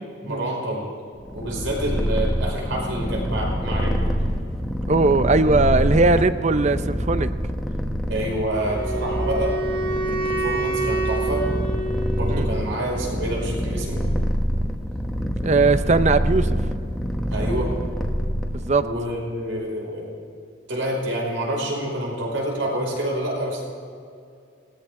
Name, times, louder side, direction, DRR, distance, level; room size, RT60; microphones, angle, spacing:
voice 1, 0.2-0.9 1.3-4.0 8.1-9.5 10.1-11.4 12.2-14.1 17.3-17.7 18.8-20.1 20.7-23.7, right 1 dB, 90° right, -2 dB, 5.5 m, -27 dB
Purr, 1.2-18.9, equal, ahead, 1.2 m, -26 dB
voice 2, 4.9-7.3 12.3-12.5 15.4-16.5 18.5-18.9, right 3 dB, 35° right, 12 dB, 0.6 m, -19 dB
Wind instrument woodwind instrument, 8.6-12.7, right 2 dB, 65° right, 3.8 m, -27 dB
20.0 x 19.0 x 3.8 m, 2.4 s
head